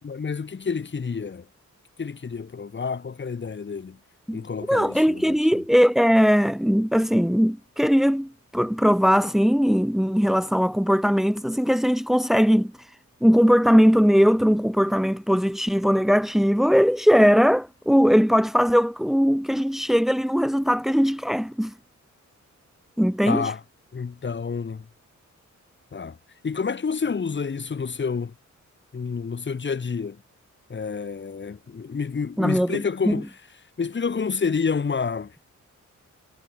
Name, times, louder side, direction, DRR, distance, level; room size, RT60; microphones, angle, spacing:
voice 1, 0.0-1.5 2.0-4.0 4.3-5.6 23.3-23.6 23.9-24.9 25.9-26.2 26.4-28.3 28.9-30.2 30.7-33.3 33.8-35.4, left 5 dB, 35° left, 4.2 m, -29 dB
voice 2, 4.7-12.7 13.2-21.7 23.0-23.5 32.4-32.8 33.1-33.2, equal, ahead, 3.2 m, -20 dB
wide cardioid pair, 180°, 30 cm